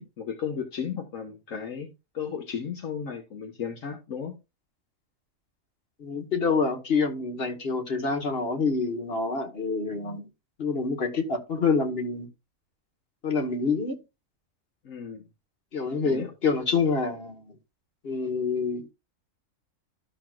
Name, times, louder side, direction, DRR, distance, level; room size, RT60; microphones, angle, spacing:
voice 1, 0.0-4.3 14.8-15.2 16.0-16.3, left 7 dB, 75° left, 1.4 m, -35 dB
voice 2, 6.0-10.3 10.6-12.3 13.2-14.0 15.7-17.5 18.0-18.9, left 4 dB, 50° left, 1.5 m, -27 dB
12.5 x 6.0 x 2.4 m
omnidirectional pair, 1.4 m